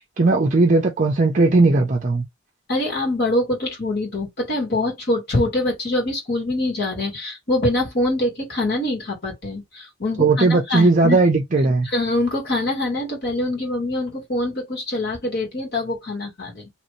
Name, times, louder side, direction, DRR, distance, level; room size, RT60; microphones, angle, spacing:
voice 1, 0.2-2.2 10.2-11.9, right 3 dB, 35° right, 0.5 m, -17 dB
voice 2, 2.7-11.2 11.8-16.7, left 1 dB, 50° left, 1.7 m, -24 dB
3.1 x 2.6 x 3.1 m
head